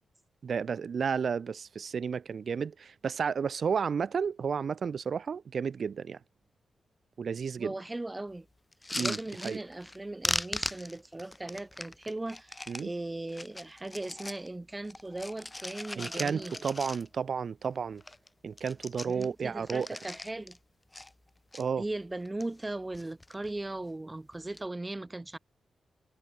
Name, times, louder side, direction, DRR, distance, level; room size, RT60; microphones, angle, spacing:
voice 1, 0.4-6.2 7.2-7.7 8.9-9.2 9.4-9.6 12.7-12.9 15.9-18.0 18.4-19.9 21.5-21.8, right 6 dB, 65° right, 4.7 m, -32 dB
voice 2, 7.6-8.5 9.0-16.6 19.1-20.6 21.8-25.4, right 2 dB, 20° right, 4.5 m, -38 dB
sound 1, 8.7-10.0 10.2-12.9 13.3-14.5 14.8-17.3 17.7-17.8 18.0-18.3 18.5-20.6 20.9-21.6 22.2-22.7 22.9-23.5 24.3-24.6, left 2 dB, 20° left, 3.3 m, -38 dB
cardioid pair, 55°, 0 cm